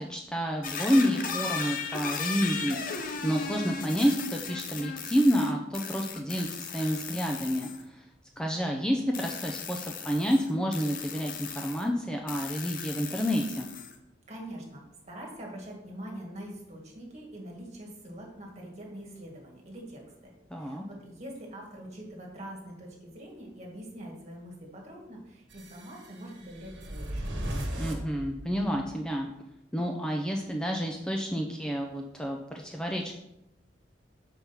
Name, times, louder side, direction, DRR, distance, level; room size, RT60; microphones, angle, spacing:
voice 1, 0.0-8.0 8.4-13.7 20.5-20.8 27.8-29.3 29.7-33.1, equal, 5° left, 1 dB, 0.5 m, -29 dB
sound 1, 0.6-7.8 9.1-11.9 12.3-14.0, left 5 dB, 50° left, 0.7 m, -37 dB
voice 2, 14.3-27.3, right 1 dB, 40° right, -1 dB, 1.8 m, -44 dB
sound 2, 25.5-29.0, right 1 dB, 75° right, 1.3 m, -37 dB
5.1 x 4.6 x 5.6 m, 0.87 s
head